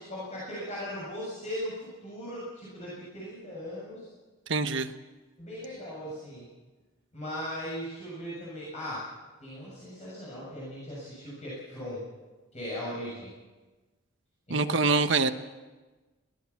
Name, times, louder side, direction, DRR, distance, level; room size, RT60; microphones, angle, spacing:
voice 1, 0.0-4.1 5.4-6.5 7.1-9.0 9.4-12.0 12.5-13.3 14.5-14.7, equal, 30° left, -7 dB, 7.3 m, -38 dB
voice 2, 4.5-4.9 14.5-15.3, right 4 dB, 60° right, 8 dB, 1.1 m, -25 dB
21.5 x 18.5 x 7.2 m, 1.2 s
head